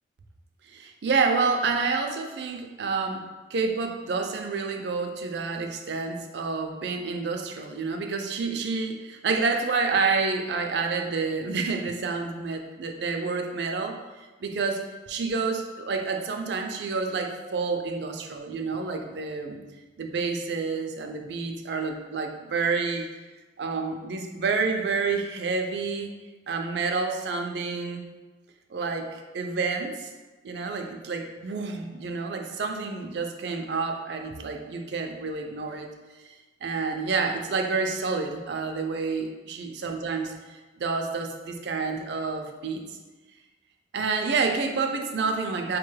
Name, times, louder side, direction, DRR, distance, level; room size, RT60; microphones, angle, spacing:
voice 1, 0.7-14.0 14.4-14.8 15.1-19.6 20.0-23.1 23.6-26.1 26.5-28.0 28.7-30.1 30.4-35.9 36.2-36.3 36.6-42.8 43.9-45.8, right 4 dB, 65° right, 4 dB, 0.4 m, -29 dB
4.6 x 2.2 x 3.1 m, 1.2 s
head